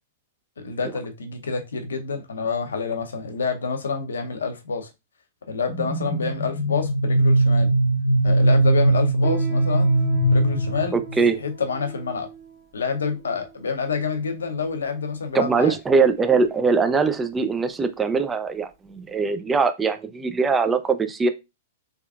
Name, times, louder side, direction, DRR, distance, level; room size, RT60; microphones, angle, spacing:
voice 1, 0.6-4.9 5.5-7.7 8.2-9.9 10.2-11.0 11.4-12.3 12.7-15.8, left 5 dB, 80° left, 0.7 m, -28 dB
sound 1, 5.7-11.3, right 2 dB, 40° left, 0.7 m, -20 dB
Piano, 9.2-19.2, right 7 dB, 30° right, 1.1 m, -42 dB
voice 2, 10.9-11.4 15.3-21.3, right 4 dB, 15° right, 0.4 m, -21 dB
3.6 x 3.3 x 2.3 m
hypercardioid pair, 110°, 0 cm